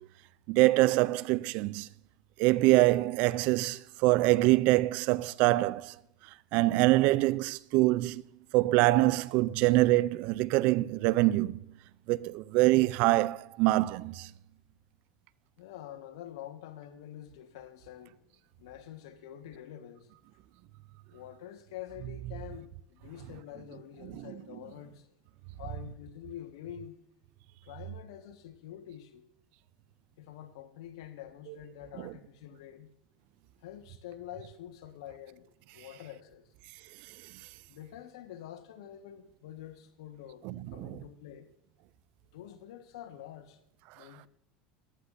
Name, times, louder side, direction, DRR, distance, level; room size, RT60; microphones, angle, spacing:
voice 1, 0.5-1.9 2.4-5.9 6.5-8.2 8.5-11.6 12.1-14.3 40.4-40.9, right 19 dB, 65° right, 0.5 m, -25 dB
voice 2, 15.6-20.1 21.1-25.1 25.5-27.0 27.6-29.2 30.2-32.9 33.6-36.5 37.7-41.5 42.3-43.6 43.9-44.3, left 11 dB, 80° left, 1.5 m, -47 dB
14.5 x 11.5 x 2.7 m
supercardioid pair, 100°, 3 cm